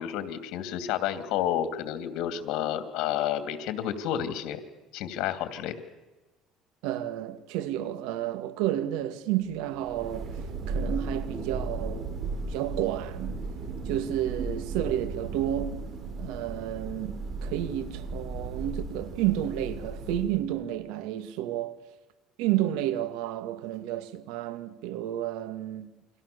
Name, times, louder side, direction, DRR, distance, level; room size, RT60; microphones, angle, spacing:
voice 1, 0.0-4.6 4.9-5.7, left 10 dB, 75° left, 2.8 m, -30 dB
voice 2, 6.8-12.1 12.5-13.4 13.9-15.8 16.2-21.7 22.4-25.9, right 12 dB, 85° right, 2.2 m, -31 dB
Thunder, 9.6-20.6, right 3 dB, 45° right, 7.6 m, -36 dB
29.0 x 24.0 x 7.0 m
cardioid pair, 115°, 0 cm